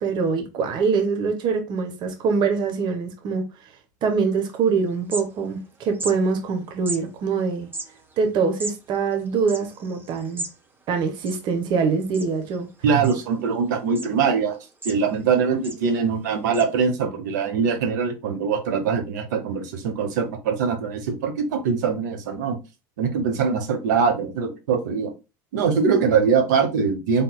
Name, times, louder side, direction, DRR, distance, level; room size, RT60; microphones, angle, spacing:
voice 1, 0.0-3.4 4.0-7.7 8.2-10.4 10.9-12.7, right 5 dB, 50° right, 1.0 m, -24 dB
sound 1, 4.5-4.6 4.9-5.7 5.9-6.2 6.9-7.0 7.6-10.6 10.9-11.0 11.2-11.8 12.1-12.6 13.0-13.5 13.9-14.1 14.5-15.3 15.6-15.8 16.5-16.6, right 2 dB, 20° right, 1.0 m, -35 dB
voice 2, 12.8-14.6 14.8-22.6 23.0-25.1 25.5-27.2, right 6 dB, 80° right, 1.0 m, -22 dB
4.3 x 3.4 x 2.3 m
hypercardioid pair, 85°, 10 cm